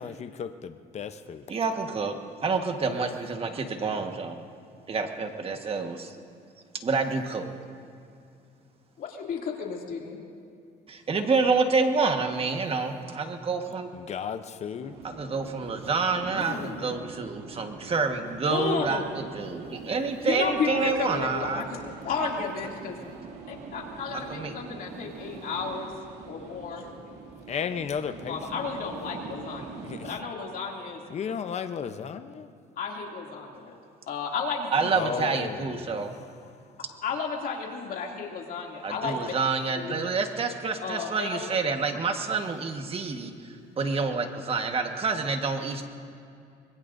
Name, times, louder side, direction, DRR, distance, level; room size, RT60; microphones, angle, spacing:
voice 1, 0.0-1.5 13.9-15.0 27.5-28.6 29.8-30.2 31.1-32.5 34.9-36.3, left 7 dB, 40° left, 9 dB, 0.8 m, -34 dB
voice 2, 1.5-2.1 2.4-4.4 4.9-6.1 6.8-7.4 10.9-13.9 15.0-21.6 24.1-24.5 34.7-36.1 38.8-43.3 43.7-45.8, right 4 dB, 35° right, 5 dB, 1.5 m, -28 dB
voice 3, 9.0-10.2 16.3-16.8 18.5-19.0 20.2-23.0 23.5-25.9 26.2-26.8 28.3-29.7 30.0-31.0 32.8-33.7 34.1-34.9 37.0-39.2 39.8-39.9 40.8-41.5, left 5 dB, 55° left, 0 dB, 2.8 m, -32 dB
sound 1, 14.8-30.1, right 4 dB, 80° right, 2.4 m, -44 dB
25.0 x 21.5 x 2.7 m, 2.5 s
cardioid pair, 110°, 17 cm